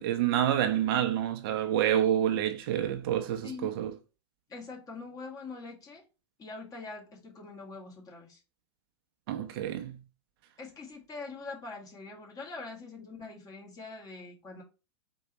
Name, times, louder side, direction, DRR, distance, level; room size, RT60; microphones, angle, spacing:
voice 1, 0.0-3.9 9.3-10.0, right 10 dB, 55° right, 0.7 m, -28 dB
voice 2, 3.4-3.8 4.5-6.1 6.4-8.4 10.6-14.6, left 3 dB, 25° left, 1.6 m, -43 dB
4.5 x 2.9 x 4.1 m
hypercardioid pair, 100°, 14 cm